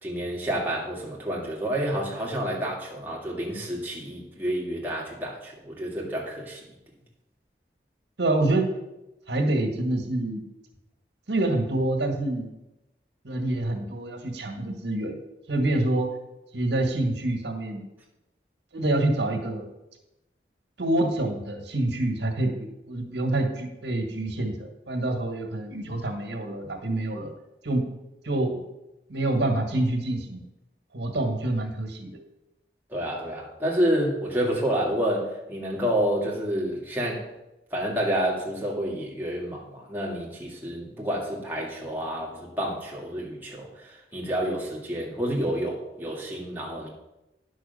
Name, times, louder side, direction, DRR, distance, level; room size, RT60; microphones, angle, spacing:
voice 1, 0.0-6.6 32.9-37.2 37.7-46.9, equal, 10° right, -3 dB, 2.1 m, -29 dB
voice 2, 8.2-8.8 9.3-10.4 11.3-12.5 13.2-15.1 15.5-16.1 16.5-17.8 18.7-19.6 20.8-27.3 27.6-27.8 28.2-28.6 29.1-30.4 30.9-32.1, right 2 dB, 85° right, 3 dB, 1.8 m, -26 dB
10.0 x 6.4 x 5.6 m, 0.94 s
head